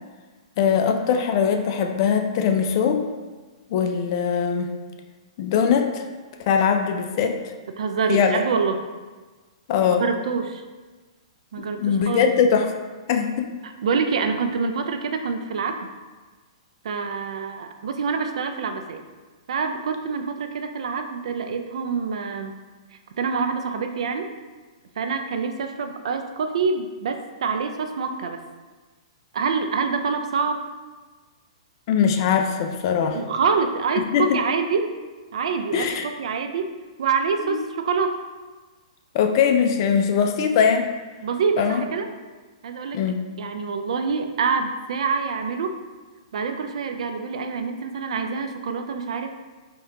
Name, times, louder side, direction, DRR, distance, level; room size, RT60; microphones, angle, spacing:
voice 1, 0.6-3.1 3.7-4.7 5.4-6.0 6.5-7.4 8.1-8.4 9.7-10.1 11.6-12.7 13.1-13.5 31.9-33.2 34.0-34.4 35.7-36.1 37.4-37.6 39.1-40.9 41.6-41.8 42.9-43.2, left 7 dB, 45° left, 6 dB, 0.4 m, -21 dB
voice 2, 7.8-8.8 10.0-10.6 11.5-12.3 13.6-15.8 16.8-19.0 19.5-22.5 23.2-24.3 25.0-28.4 29.3-30.6 33.1-34.9 35.3-35.9 36.2-38.2 41.2-42.1 42.6-43.0 43.4-45.8 46.3-49.3, right 5 dB, 70° right, 6 dB, 0.4 m, -26 dB
3.7 x 2.8 x 3.3 m, 1.3 s
hypercardioid pair, 150°, 3 cm